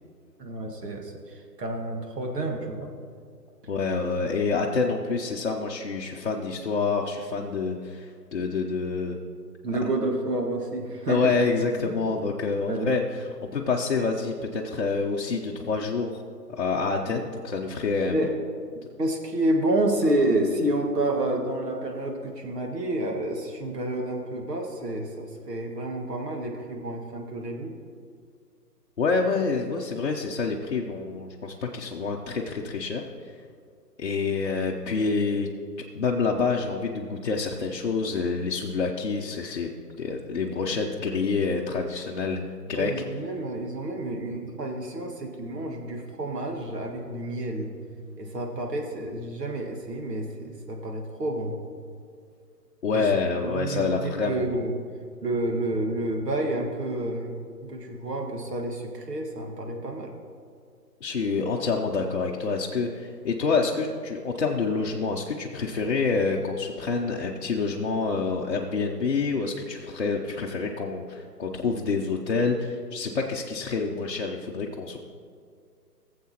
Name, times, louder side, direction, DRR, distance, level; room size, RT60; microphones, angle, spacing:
voice 1, 0.4-2.9 9.6-11.3 11.8-12.0 12.7-12.9 17.1-17.2 18.1-18.3 19.0-27.7 42.7-47.7 48.2-51.6 52.9-53.1 53.4-54.7 55.2-57.3 57.7-60.2, right 1 dB, 75° right, 2 dB, 1.8 m, -29 dB
voice 2, 3.7-9.2 11.1-16.2 16.5-18.2 29.0-33.0 34.0-35.5 35.9-39.7 40.0-42.4 42.7-42.9 52.8-54.6 61.0-75.0, left 4 dB, 45° left, -2 dB, 0.7 m, -27 dB
16.5 x 7.5 x 2.9 m, 2.2 s
hypercardioid pair, 160°, 49 cm